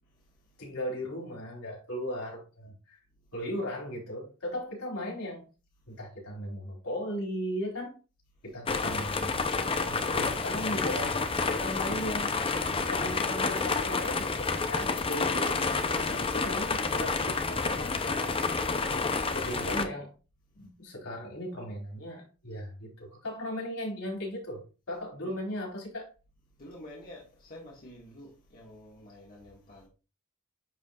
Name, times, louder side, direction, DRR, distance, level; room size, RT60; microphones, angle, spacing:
voice 1, 0.0-0.6 3.1-3.3 5.8-6.0 8.3-8.4 20.5-20.7 25.2-25.3 26.5-29.9, left 1 dB, 40° left, 1.9 m, -51 dB
voice 2, 0.6-3.0 3.3-5.4 5.9-7.9 8.4-9.4 9.8-12.3 12.9-15.7 16.1-18.4 19.3-20.1 20.5-26.1, equal, 75° left, 4.2 m, -37 dB
sound 1, 8.7-19.9, left 4 dB, 25° left, 0.6 m, -29 dB
10.5 x 4.9 x 2.4 m
head